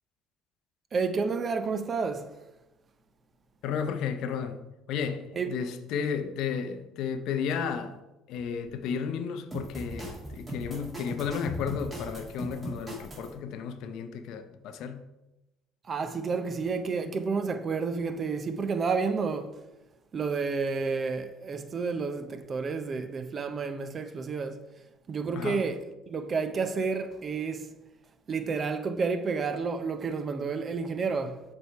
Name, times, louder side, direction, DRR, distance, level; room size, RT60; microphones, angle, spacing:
voice 1, 0.9-2.3 5.4-5.6 15.9-19.6 20.1-24.6 25.1-25.8 26.1-27.7 28.3-31.4, right 4 dB, 35° right, 0.6 m, -30 dB
voice 2, 3.6-4.6 4.9-8.0 8.3-15.0 25.3-25.7, left 7 dB, 70° left, 0.6 m, -33 dB
sound 1, 9.5-13.3, right 1 dB, 20° right, 2.1 m, -38 dB
6.6 x 3.5 x 4.6 m
cardioid pair, 100°, 0 cm